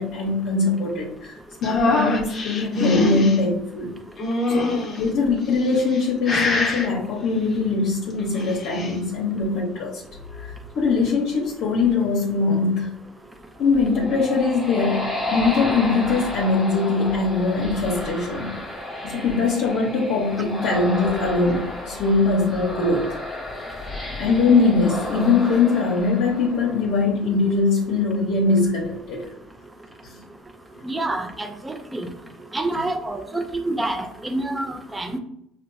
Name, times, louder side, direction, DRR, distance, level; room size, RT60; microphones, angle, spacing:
voice 1, 0.0-3.9 4.5-10.0 10.4-12.9 13.6-18.5 19.0-23.1 24.2-29.2 30.0-30.2, left 3 dB, 70° left, -3 dB, 0.8 m, -22 dB
sound 1, 1.6-3.4 4.2-5.0 5.7-6.0 6.2-6.9 8.2-8.9, left 2 dB, 35° left, 0.9 m, -23 dB
sound 2, 13.6-27.1, left 2 dB, 5° left, 1.0 m, -32 dB
voice 2, 30.8-32.1 32.5-35.2, right 2 dB, 15° right, 6 dB, 0.5 m, -27 dB
4.3 x 2.2 x 2.6 m, 0.75 s
supercardioid pair, 95°, 0 cm